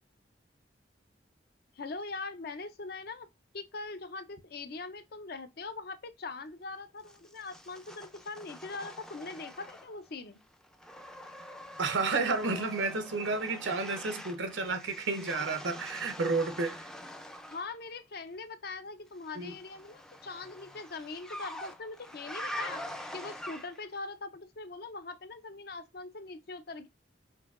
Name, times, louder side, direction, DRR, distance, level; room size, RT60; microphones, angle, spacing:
voice 1, 1.8-3.3 3.5-10.4 17.5-22.8 23.1-26.9, left 3 dB, 55° left, 0.5 m, -42 dB
sound 1, 7.1-10.1 10.4-17.7 19.2-24.0, equal, 5° left, 0.4 m, -45 dB
voice 2, 11.8-16.8 19.4-19.5, right 3 dB, 85° right, 0.7 m, -31 dB
5.5 x 2.7 x 2.4 m
head